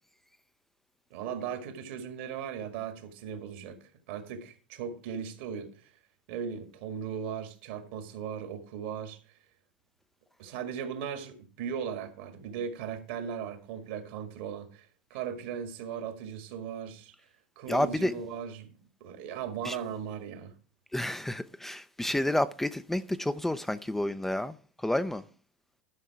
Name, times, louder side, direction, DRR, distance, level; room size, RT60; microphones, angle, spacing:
voice 1, 1.1-5.9 6.3-9.2 10.4-17.1 17.6-18.7 19.0-20.6, right 7 dB, 65° right, 1.9 m, -38 dB
voice 2, 17.7-18.1 19.6-19.8 20.9-24.6 24.8-25.2, left 1 dB, 5° left, 0.5 m, -30 dB
11.5 x 5.5 x 4.8 m
hypercardioid pair, 90°, 6 cm